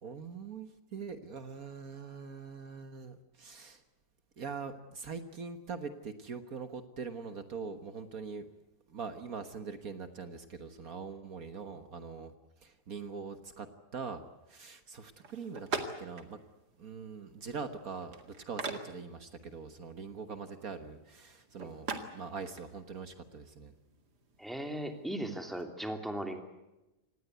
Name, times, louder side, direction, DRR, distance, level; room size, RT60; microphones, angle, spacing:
voice 1, 0.0-3.8 4.4-8.5 8.9-12.3 12.6-14.2 14.5-15.7 16.0-16.4 16.8-23.7, right 5 dB, 60° right, 9 dB, 1.8 m, -43 dB
sound 1, 15.2-25.7, right 4 dB, 85° right, 2.7 m, -45 dB
voice 2, 24.4-26.4, right 1 dB, ahead, 5 dB, 2.8 m, -37 dB
26.5 x 19.5 x 8.1 m, 0.99 s
omnidirectional pair, 1.7 m